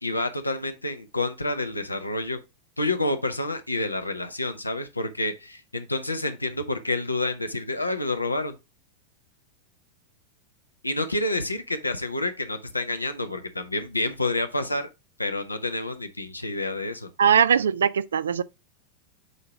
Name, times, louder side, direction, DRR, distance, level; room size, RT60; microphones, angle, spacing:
voice 1, 0.0-2.4 2.8-8.5 10.8-14.9 15.2-17.1, left 2 dB, 85° left, 0.8 m, -28 dB
voice 2, 17.2-18.4, right 7 dB, 65° right, 0.3 m, -20 dB
8.1 x 2.9 x 4.6 m
figure-of-eight pair, 90°, 0 cm